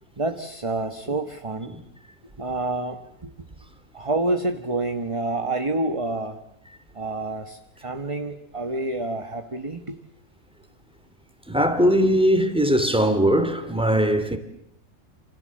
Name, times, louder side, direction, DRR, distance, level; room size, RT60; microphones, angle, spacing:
voice 1, 0.2-1.8 2.4-3.3 3.9-6.4 6.9-10.0, right 2 dB, 20° right, 1.3 m, -28 dB
voice 2, 11.5-14.4, equal, 5° right, 2.8 m, -20 dB
28.5 x 27.0 x 7.7 m
omnidirectional pair, 1.6 m